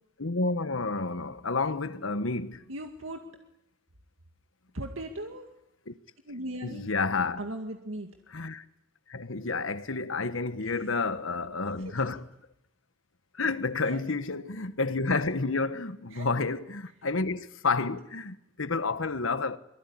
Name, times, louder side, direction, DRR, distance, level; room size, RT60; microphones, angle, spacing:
voice 1, 0.2-2.6 5.9-6.0 6.6-7.4 8.3-8.6 9.1-12.2 13.4-19.6, left 3 dB, 85° left, 1.4 m, -30 dB
voice 2, 2.7-3.3 4.7-5.5 6.2-6.9 7.4-8.1 10.6-11.0 11.7-12.0 13.8-14.0 16.1-16.3, right 1 dB, 85° right, 2.1 m, -39 dB
24.5 x 23.5 x 9.9 m
head